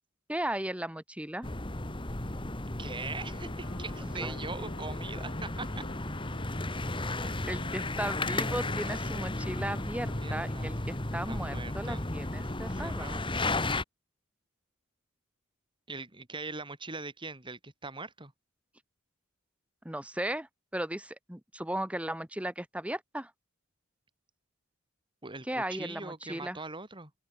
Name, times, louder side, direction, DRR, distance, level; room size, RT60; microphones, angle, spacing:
voice 1, 0.3-1.5 4.2-4.4 7.5-13.1 19.9-20.5 20.7-23.3 25.5-26.6, right 1 dB, 5° right, 1.8 m, -36 dB
sound 1, 1.4-13.8, left 2 dB, 25° left, 2.0 m, -34 dB
voice 2, 2.8-5.8 7.2-7.5 10.2-10.7 11.3-12.0 12.7-13.3 15.9-18.3 25.2-27.1, right 3 dB, 25° right, 4.3 m, -41 dB
Wind instrument woodwind instrument, 3.1-10.9, left 2 dB, 65° left, 2.7 m, -52 dB
open air
head